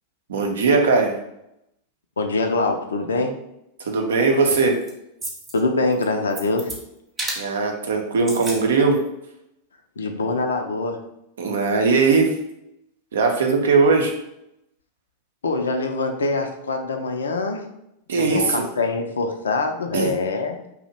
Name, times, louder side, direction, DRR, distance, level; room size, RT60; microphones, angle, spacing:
voice 1, 0.3-1.1 3.9-4.8 7.4-9.0 11.4-12.3 13.1-14.1 18.1-18.6 19.9-20.1, right 4 dB, 65° right, 3 dB, 0.6 m, -19 dB
voice 2, 2.2-3.3 5.5-6.7 10.0-11.0 15.4-17.6 18.2-20.6, left 3 dB, 70° left, 5 dB, 0.4 m, -24 dB
sound 1, 4.4-4.9 5.2-5.6 5.9-6.8 7.2-7.4 8.1-8.6 8.9-9.0, right 2 dB, 15° right, 0.7 m, -31 dB
2.7 x 2.1 x 4.0 m, 0.82 s
figure-of-eight pair, 90°, 0 cm